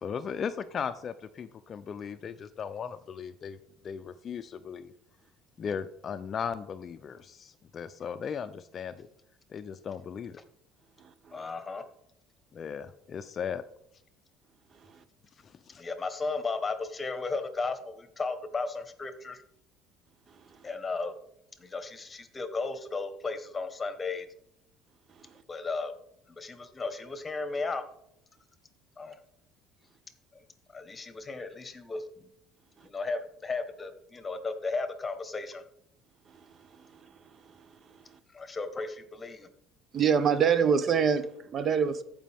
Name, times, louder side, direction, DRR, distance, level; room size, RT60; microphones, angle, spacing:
voice 1, 0.0-3.6 3.8-4.9 5.6-9.1 9.5-10.4 12.5-13.6 15.4-15.8, left 7 dB, 40° left, 0.4 m, -37 dB
voice 2, 11.3-11.8 15.8-19.4 20.6-21.1 21.6-24.3 25.5-25.9 26.4-27.8 29.0-29.1 30.7-32.3 32.8-35.6 38.3-39.5, left 3 dB, 20° left, 1.1 m, -35 dB
voice 3, 39.9-42.0, right 7 dB, 40° right, 0.5 m, -24 dB
14.0 x 5.1 x 3.5 m
cardioid pair, 115°, 0 cm